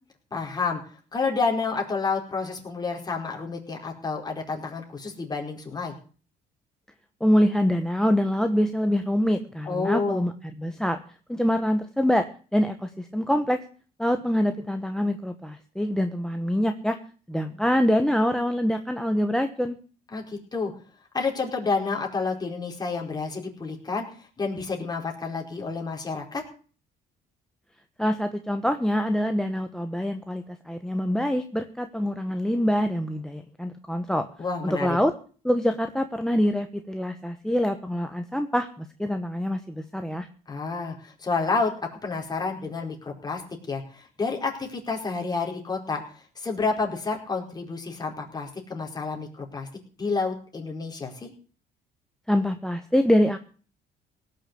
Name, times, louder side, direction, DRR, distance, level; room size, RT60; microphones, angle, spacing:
voice 1, 0.3-0.8 1.1-5.9 9.7-10.2 20.1-20.7 21.1-26.4 34.4-35.0 40.5-43.4 43.7-49.7 50.0-51.3, left 4 dB, 25° left, 0 dB, 4.5 m, -29 dB
voice 2, 7.2-11.0 11.3-13.6 14.0-17.0 17.3-19.7 28.0-34.3 34.6-35.1 35.4-40.3 52.3-53.4, equal, 5° left, 8 dB, 1.1 m, -25 dB
17.5 x 6.7 x 8.4 m, 0.41 s
cardioid pair, 110°, 17 cm